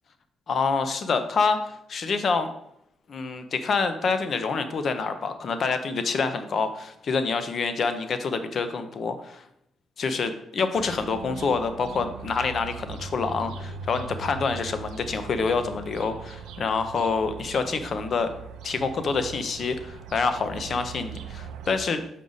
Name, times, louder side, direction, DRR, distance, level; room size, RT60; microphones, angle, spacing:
voice 1, 0.5-1.6 1.9-2.5 3.1-9.4 10.0-18.3 18.6-22.0, left 4 dB, 50° left, 9 dB, 0.7 m, -27 dB
sound 1, 10.7-21.8, right 6 dB, 90° right, 0.5 m, -40 dB
5.5 x 5.0 x 4.0 m, 0.75 s
cardioid pair, 90°, 0 cm